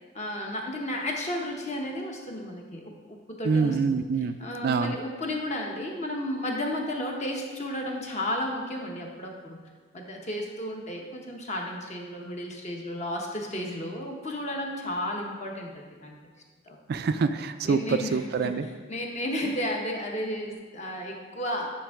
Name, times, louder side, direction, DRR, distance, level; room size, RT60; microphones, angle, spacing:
voice 1, 0.1-4.1 4.4-9.6 9.9-15.7 16.0-16.2 16.7-16.8 17.6-21.7, left 1 dB, 35° left, 0 dB, 1.0 m, -33 dB
voice 2, 3.4-4.4 4.6-5.0 16.9-18.6, right 5 dB, 55° right, 9 dB, 0.3 m, -25 dB
8.8 x 5.2 x 3.6 m, 1.4 s
head